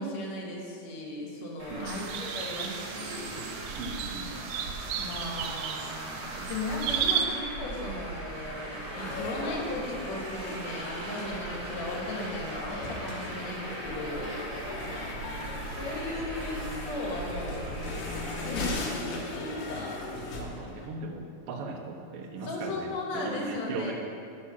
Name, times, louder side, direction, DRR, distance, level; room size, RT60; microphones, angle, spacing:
voice 1, 0.0-3.5 4.9-14.4 15.6-17.7 18.4-20.0 22.4-23.9, left 2 dB, 65° left, -2 dB, 2.6 m, -36 dB
Traffic noise roadway noise, 1.6-18.7, right 1 dB, 40° right, 1.7 m, -39 dB
voice 2, 1.7-2.1 3.8-4.3 14.8-15.0 20.1-23.9, right 3 dB, 70° right, 3 dB, 1.5 m, -38 dB
sound 1, 1.9-7.3, right 8 dB, 85° right, 2.0 m, -34 dB
sound 2, 8.9-20.9, left 3 dB, 85° left, 2.6 m, -39 dB
8.5 x 6.4 x 5.8 m, 2.6 s
omnidirectional pair, 3.4 m